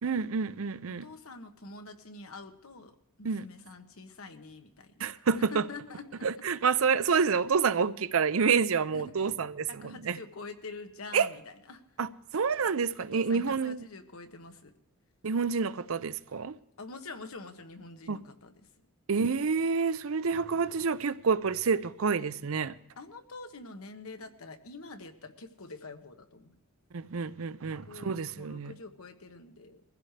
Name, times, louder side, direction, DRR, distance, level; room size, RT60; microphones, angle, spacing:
voice 1, 0.0-1.1 3.2-3.5 5.0-5.6 6.2-10.2 11.1-11.3 12.0-13.9 15.2-16.6 18.1-18.2 19.1-22.8 26.9-28.7, right 5 dB, 70° right, 0.6 m, -28 dB
voice 2, 1.0-2.9 3.2-6.3 8.9-9.3 9.7-11.8 13.1-14.7 16.8-18.5 23.0-26.6 27.8-28.1 28.3-29.8, left 3 dB, 75° left, 1.4 m, -46 dB
23.0 x 15.5 x 3.3 m
head